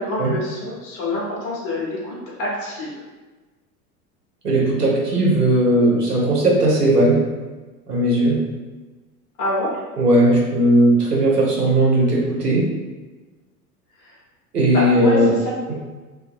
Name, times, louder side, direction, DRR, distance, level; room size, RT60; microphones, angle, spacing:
voice 1, 0.0-2.9 9.4-9.7 14.0-14.1 14.7-15.2 15.4-15.7, left 1 dB, 40° left, -5 dB, 1.0 m, -26 dB
voice 2, 4.4-7.2 7.9-8.4 10.0-12.7 14.5-15.3 15.7-15.8, right 1 dB, 90° right, -3 dB, 0.7 m, -17 dB
2.6 x 2.3 x 2.5 m, 1.3 s
figure-of-eight pair, 80°, 46 cm